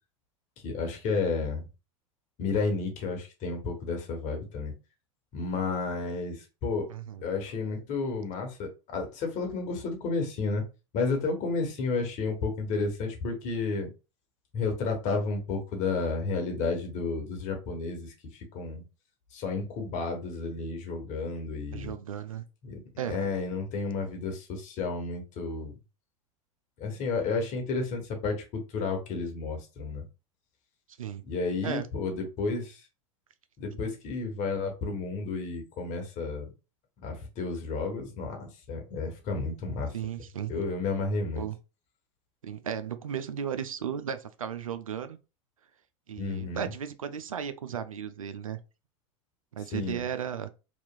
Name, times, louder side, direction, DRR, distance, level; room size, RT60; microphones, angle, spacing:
voice 1, 0.6-1.7 2.4-4.7 5.3-6.9 7.2-10.6 10.9-13.9 14.5-18.8 19.3-21.9 22.6-22.8 23.1-25.7 26.8-28.4 28.7-30.0 31.3-32.8 33.6-36.5 37.0-39.9 40.5-41.5 46.2-46.7 49.7-50.0, left 4 dB, 45° left, 1.1 m, -31 dB
voice 2, 6.9-7.2 21.7-22.4 23.0-23.2 31.0-31.2 31.6-31.9 39.9-40.5 41.4-41.6 42.4-45.2 46.1-48.6 49.5-50.5, right 8 dB, 85° right, 0.4 m, -35 dB
2.9 x 2.4 x 2.2 m
hypercardioid pair, 85°, 17 cm